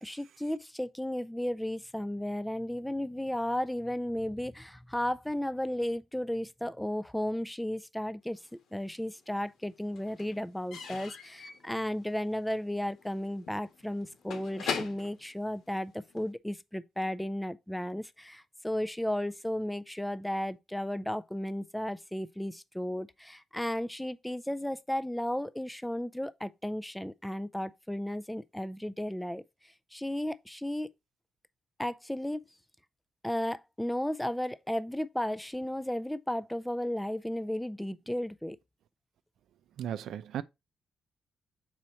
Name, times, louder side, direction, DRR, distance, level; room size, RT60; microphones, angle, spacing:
voice 1, 0.0-8.4 8.7-29.4 29.9-30.9 31.8-32.5 33.2-38.6, left 1 dB, 5° left, 0.3 m, -34 dB
Slam / Squeak / Wood, 8.5-9.3 9.5-16.3, left 6 dB, 85° left, 1.3 m, -42 dB
voice 2, 39.8-40.4, right 10 dB, 85° right, 0.4 m, -35 dB
6.2 x 4.4 x 4.1 m
wide cardioid pair, 170°, 0 cm